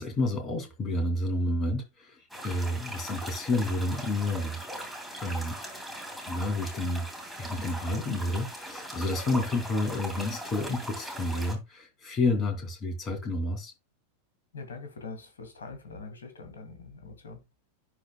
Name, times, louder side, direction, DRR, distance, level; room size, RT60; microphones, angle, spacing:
voice 1, 0.0-5.0 5.2-5.6 6.3-7.1 7.3-13.7, left 2 dB, 25° left, 2.6 m, -30 dB
sound 1, 2.3-11.5, right 1 dB, ahead, 2.8 m, -40 dB
voice 2, 14.5-17.4, left 4 dB, 70° left, 2.3 m, -43 dB
11.5 x 4.4 x 2.2 m
figure-of-eight pair, 90°, 0 cm